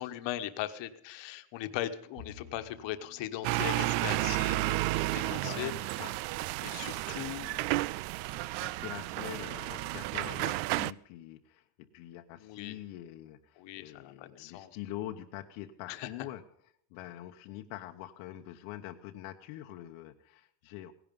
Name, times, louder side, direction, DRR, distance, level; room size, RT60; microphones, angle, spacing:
voice 1, 0.0-6.0 6.6-7.5 12.4-12.8 13.6-14.7 15.9-16.1, left 13 dB, 60° left, 9 dB, 1.3 m, -39 dB
Bowed string instrument, 2.2-5.7, left 3 dB, 45° right, 2.3 m, -55 dB
sound 1, 3.4-10.9, right 19 dB, 70° right, 0.5 m, -32 dB
voice 2, 5.2-6.1 7.1-16.4 16.9-20.9, left 13 dB, 80° left, 4 dB, 1.1 m, -45 dB
17.5 x 11.0 x 5.3 m, 0.69 s
cardioid pair, 160°, 49 cm